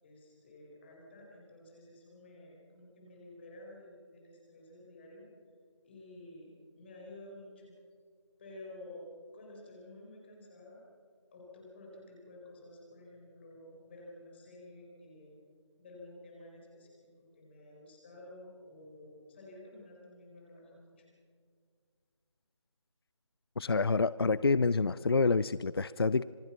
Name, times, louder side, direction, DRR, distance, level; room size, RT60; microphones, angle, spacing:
voice 1, 0.0-5.3 5.8-6.5 6.8-7.8 8.4-9.0 9.3-10.8 11.3-15.3 15.8-21.1, left 1 dB, 20° left, -2 dB, 4.4 m, -52 dB
voice 2, 23.6-26.2, left 4 dB, 50° left, 18 dB, 0.5 m, -27 dB
26.5 x 22.5 x 5.9 m, 2.1 s
figure-of-eight pair, 165°, 16 cm